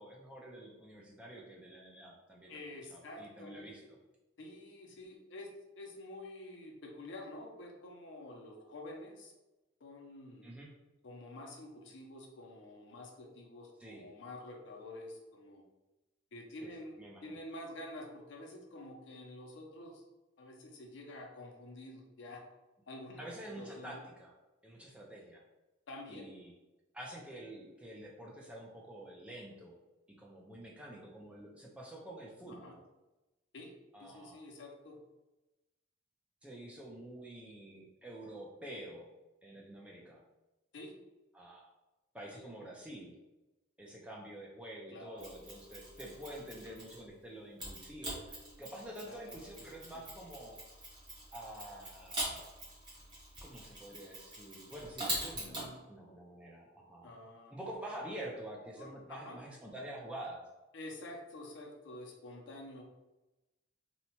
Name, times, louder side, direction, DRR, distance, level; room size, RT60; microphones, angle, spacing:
voice 1, 0.0-2.6 2.9-3.8 10.4-10.7 13.8-14.1 16.6-16.7 17.0-17.4 23.2-24.3 24.6-25.4 26.1-26.5 26.9-29.8 30.2-32.8 33.9-34.4 36.4-39.1 39.4-40.2 41.3-41.7 42.1-43.1 43.8-50.6 51.3-52.5 53.4-57.1 57.5-60.4, right 1 dB, 5° right, -3 dB, 0.4 m, -48 dB
voice 2, 2.5-3.7 4.4-9.3 9.8-10.5 11.0-15.6 16.3-20.0 20.4-22.4 22.9-23.3 23.6-24.0 25.9-26.3 32.5-32.7 33.5-33.7 34.0-35.0 40.7-40.9 42.3-42.5 44.9-45.3 49.0-49.4 49.9-50.0 55.4-55.9 57.0-57.5 58.8-59.4 60.7-62.8, left 1 dB, 70° left, 1 dB, 0.5 m, -48 dB
Mechanisms, 45.2-47.1 47.6-55.7, right 1 dB, 25° right, 0.9 m, -43 dB
2.8 x 2.1 x 2.8 m, 1.0 s
head